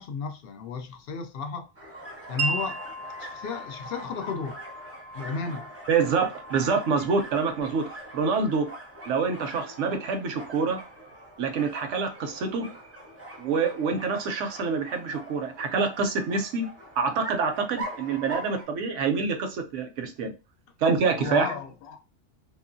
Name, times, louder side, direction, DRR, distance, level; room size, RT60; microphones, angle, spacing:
voice 1, 0.0-1.6 2.3-2.8 3.2-4.6 5.1-5.6 21.2-22.0, left 5 dB, 60° left, 0.7 m, -33 dB
sound 1, 1.7-18.6, right 2 dB, 15° right, 0.5 m, -43 dB
Wind chime, 2.4-10.0, right 3 dB, 60° right, 0.6 m, -38 dB
voice 2, 5.9-8.7 9.1-10.8 11.4-12.7 13.4-16.7 17.0-20.3 20.8-21.5, right 5 dB, 80° right, 0.9 m, -26 dB
2.9 x 2.4 x 2.5 m
omnidirectional pair, 1.3 m